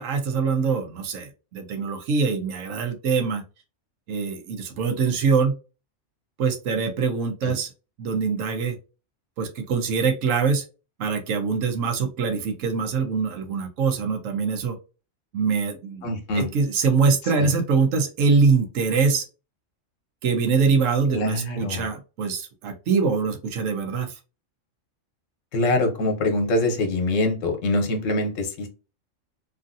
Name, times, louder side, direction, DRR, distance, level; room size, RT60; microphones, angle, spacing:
voice 1, 0.0-3.4 4.1-5.5 6.4-7.7 8.0-8.8 9.4-10.6 11.0-14.8 15.3-16.1 16.3-19.2 20.2-24.1, right 5 dB, 75° right, 4 dB, 1.1 m, -23 dB
voice 2, 16.0-16.5 17.4-17.5 21.1-21.8 25.5-28.7, left 2 dB, 70° left, 5 dB, 1.2 m, -24 dB
3.1 x 2.6 x 2.5 m, 0.32 s
omnidirectional pair, 1.4 m